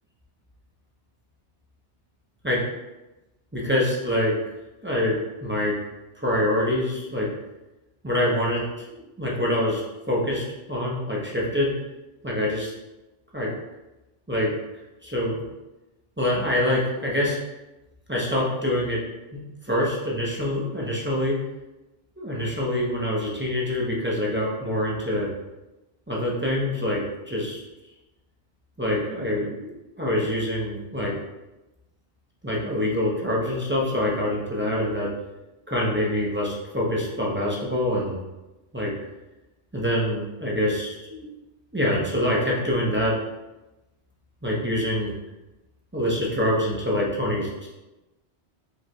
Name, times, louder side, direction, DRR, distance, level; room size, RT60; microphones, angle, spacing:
voice 1, 3.5-4.3 4.8-5.8 6.2-7.3 8.0-9.8 10.1-11.7 12.2-12.7 13.3-13.5 14.3-14.5 15.0-15.4 16.2-17.4 18.1-19.0 19.3-21.4 22.2-25.3 26.1-27.6 28.8-31.1 32.4-35.1 35.7-38.2 38.7-38.9 39.7-41.3 41.7-43.1 44.4-45.1 45.9-47.7, left 1 dB, 15° right, -4 dB, 0.6 m, -25 dB
4.9 x 4.4 x 2.2 m, 1.0 s
omnidirectional pair, 1.1 m